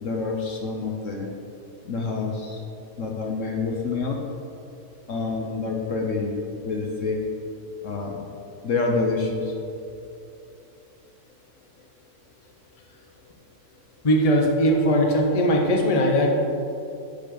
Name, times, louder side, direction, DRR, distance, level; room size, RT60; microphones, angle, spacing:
voice 1, 0.0-1.3 1.9-2.6 3.0-4.2 5.1-6.4 6.6-7.2 7.8-8.2 8.6-9.5, left 3 dB, 55° left, 1 dB, 1.1 m, -27 dB
voice 2, 14.0-16.3, equal, 25° left, 1 dB, 0.9 m, -20 dB
11.0 x 7.1 x 3.9 m, 2.6 s
omnidirectional pair, 1.7 m